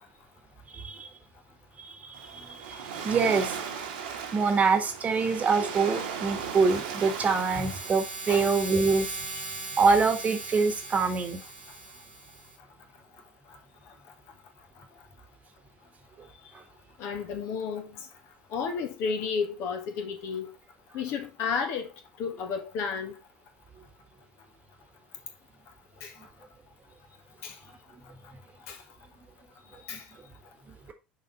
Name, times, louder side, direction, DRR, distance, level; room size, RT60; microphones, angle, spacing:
voice 1, 0.7-1.1 1.8-3.6 4.3-9.2 9.8-11.4 16.5-16.6 29.9-30.0, right 4 dB, 30° right, 1.5 m, -25 dB
Waves surf, 2.1-8.9, right 7 dB, 65° right, 1.6 m, -37 dB
sound 1, 6.4-12.6, right 3 dB, 90° right, 1.8 m, -40 dB
voice 2, 17.0-18.0 18.5-20.5 20.9-21.9 22.2-23.1 26.0-26.1 27.4-27.5 28.7-28.8 29.9-30.0, left 5 dB, 50° left, 1.7 m, -32 dB
6.7 x 4.9 x 4.1 m
figure-of-eight pair, 70°, 5 cm